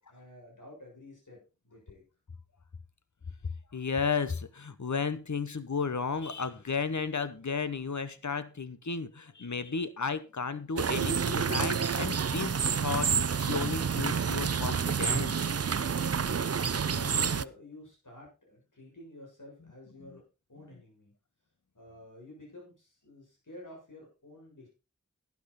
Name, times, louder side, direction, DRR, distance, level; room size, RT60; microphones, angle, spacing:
voice 1, 0.1-2.0 15.9-20.2 20.5-21.1 21.7-24.7, left 1 dB, 85° left, -2 dB, 6.9 m, -50 dB
voice 2, 3.7-15.5 20.0-20.1, left 5 dB, 70° left, 13 dB, 1.1 m, -33 dB
sound 1, 10.8-17.4, right 6 dB, 55° right, 0.5 m, -29 dB
12.0 x 11.0 x 4.2 m, 0.29 s
wide cardioid pair, 40°, 30 cm